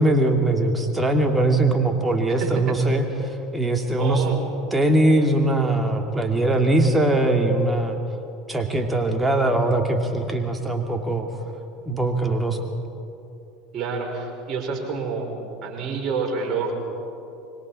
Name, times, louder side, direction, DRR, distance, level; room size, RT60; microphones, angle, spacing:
voice 1, 0.0-4.2 4.7-8.0 8.5-11.3 11.8-12.6, right 2 dB, 10° right, 3 dB, 2.5 m, -21 dB
voice 2, 2.4-2.8 4.0-4.4 13.7-15.3 15.6-16.7, right 5 dB, 40° right, -1 dB, 5.3 m, -28 dB
25.5 x 24.0 x 4.4 m, 2.7 s
figure-of-eight pair, 75°, 0 cm